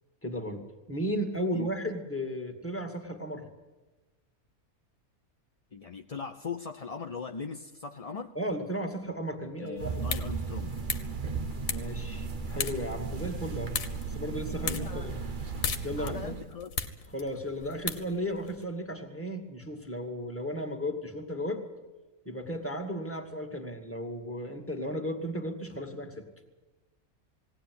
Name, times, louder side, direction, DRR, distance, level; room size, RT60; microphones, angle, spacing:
voice 1, 0.2-3.5 8.4-9.9 11.7-13.7 14.1-15.2 15.8-16.3 17.1-21.6 22.3-26.2, equal, 10° left, 2 dB, 2.2 m, -35 dB
voice 2, 5.7-8.3 9.6-10.9 14.6-15.1 16.0-16.7, left 5 dB, 35° left, 4 dB, 0.6 m, -39 dB
sound 1, 9.8-18.6, left 6 dB, 70° left, 1.6 m, -39 dB
sound 2, 9.8-16.5, right 5 dB, 40° right, 1.0 m, -36 dB
20.0 x 17.5 x 9.5 m, 1.2 s
omnidirectional pair, 1.5 m